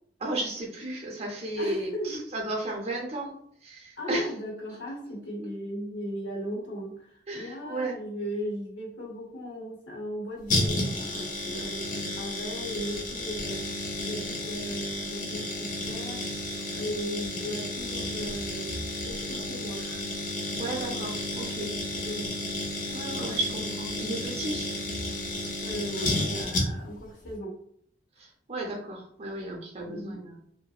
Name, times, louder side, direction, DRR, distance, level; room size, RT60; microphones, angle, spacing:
voice 1, 0.2-3.4 3.6-4.3 7.3-8.0 20.5-21.7 22.9-24.7 28.2-30.4, right 2 dB, 35° right, 0 dB, 0.6 m, -34 dB
voice 2, 1.6-2.2 4.0-13.7 14.0-16.3 16.7-18.8 19.0-20.1 21.9-22.3 25.5-27.6 29.9-30.2, equal, 90° left, -1 dB, 0.9 m, -37 dB
sound 1, 10.5-27.0 27.2-27.3, left 1 dB, 45° left, 0.6 m, -32 dB
2.8 x 2.1 x 2.3 m, 0.67 s
head